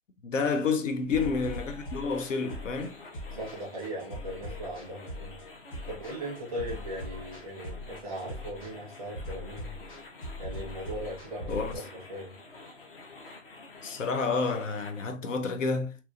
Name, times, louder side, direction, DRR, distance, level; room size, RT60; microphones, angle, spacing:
voice 1, 0.2-3.0 11.5-11.8 13.8-16.0, left 4 dB, 90° left, 0.7 m, -29 dB
sound 1, 1.1-15.1, left 3 dB, 50° left, 0.8 m, -48 dB
sound 2, 1.1-11.8, left 1 dB, 25° left, 1.2 m, -41 dB
voice 2, 3.4-5.4 5.9-9.8 10.4-12.3, right 1 dB, 5° left, 0.7 m, -39 dB
3.0 x 2.9 x 2.4 m
hypercardioid pair, 170°, 37 cm